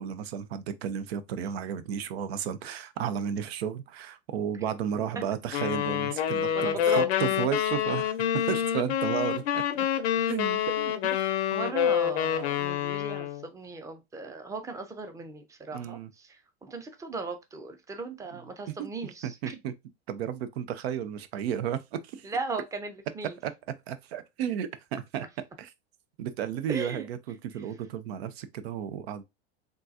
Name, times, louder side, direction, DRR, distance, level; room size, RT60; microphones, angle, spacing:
voice 1, 0.0-9.9 10.3-10.6 15.7-16.1 18.3-18.4 18.7-18.9 19.2-19.7 20.1-22.3 23.4-23.5 23.9-25.2 25.6-25.7 26.2-29.2, right 9 dB, 70° right, 0.6 m, -33 dB
sound 1, 5.5-13.5, left 10 dB, 75° left, 0.6 m, -27 dB
voice 2, 6.5-7.1 10.8-10.9 11.5-19.6 22.2-23.4 26.7-27.1, right 3 dB, 10° right, 0.6 m, -37 dB
3.7 x 2.4 x 2.6 m
hypercardioid pair, 100°, 33 cm